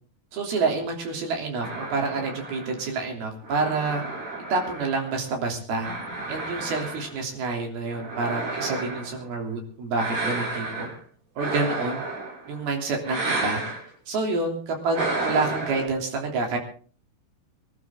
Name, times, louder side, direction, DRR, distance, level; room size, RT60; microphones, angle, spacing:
voice 1, 0.3-4.0 4.5-5.9 6.3-10.9 11.4-12.0 12.5-13.6 14.1-16.6, right 3 dB, 70° right, 2 dB, 5.1 m, -28 dB
sound 1, 1.6-5.3 5.8-7.3 7.9-9.2 10.0-11.0 11.4-12.6 13.0-13.8 14.9-15.9, right 3 dB, 90° right, 8.1 m, -32 dB
24.5 x 12.5 x 3.8 m, 0.42 s
omnidirectional pair, 4.6 m